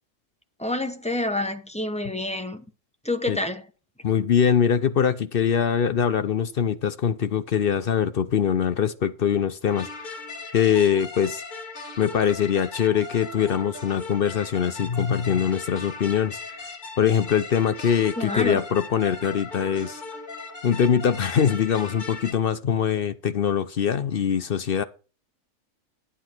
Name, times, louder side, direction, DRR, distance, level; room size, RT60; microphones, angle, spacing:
voice 1, 0.6-2.6 3.0-3.6 18.2-18.6, left 1 dB, 5° left, 0.7 m, -28 dB
voice 2, 4.0-10.1 10.5-11.4 12.0-16.4 17.0-20.0 20.6-24.8, left 8 dB, 55° left, 0.6 m, -23 dB
sound 1, 9.7-22.3, left 3 dB, 30° left, 2.2 m, -38 dB
10.0 x 9.9 x 4.5 m
omnidirectional pair, 1.7 m